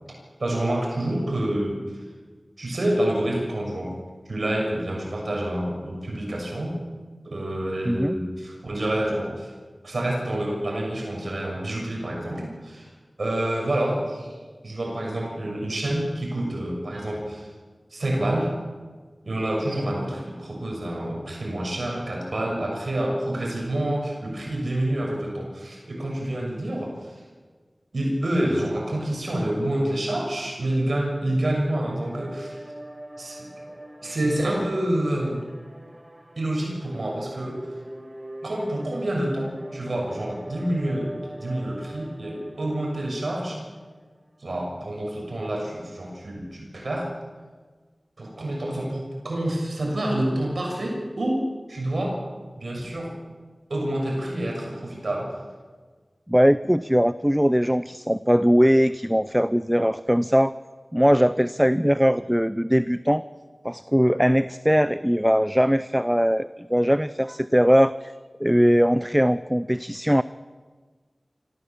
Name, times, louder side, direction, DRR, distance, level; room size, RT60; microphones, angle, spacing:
voice 1, 0.4-1.8 2.6-3.9 4.3-6.8 7.2-9.5 9.8-12.9 13.2-14.3 14.6-17.5 17.9-18.5 19.2-27.1 27.9-32.6 33.2-33.7 34.0-35.4 36.4-37.6 38.4-43.6 44.4-47.1 48.2-51.4 51.7-52.2 52.6-53.1 53.7-55.3, right 1 dB, 75° right, -1 dB, 6.5 m, -28 dB
voice 2, 7.9-8.2 56.3-60.5 60.9-63.3 63.6-68.1 68.4-70.2, equal, 5° right, 14 dB, 0.6 m, -20 dB
sound 1, 31.0-44.3, right 1 dB, 25° right, 3.0 m, -42 dB
25.5 x 15.5 x 7.4 m, 1.4 s
wide cardioid pair, 40°, 0 cm